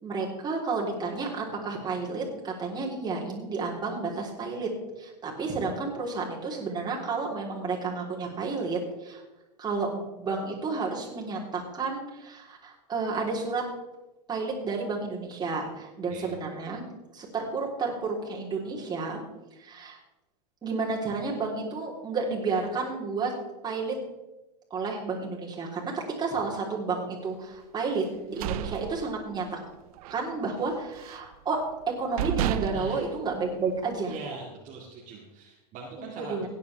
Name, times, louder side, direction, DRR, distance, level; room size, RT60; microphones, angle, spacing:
voice 1, 0.0-4.7 5.0-9.2 9.6-13.6 14.3-16.8 17.1-19.2 19.6-20.0 20.6-23.3 23.6-24.0 24.7-29.6 30.1-31.6 32.0-34.1 36.2-36.5, right 4 dB, 20° right, -3 dB, 3.6 m, -31 dB
sound 1, 28.1-29.6 30.0-30.2 30.6-31.3 31.8-31.9 32.2-34.0, right 13 dB, 60° right, 0.6 m, -32 dB
voice 2, 32.7-33.0 34.0-36.4, right 4 dB, 35° right, -2 dB, 2.2 m, -41 dB
17.0 x 10.0 x 3.5 m, 1.0 s
hypercardioid pair, 115°, 21 cm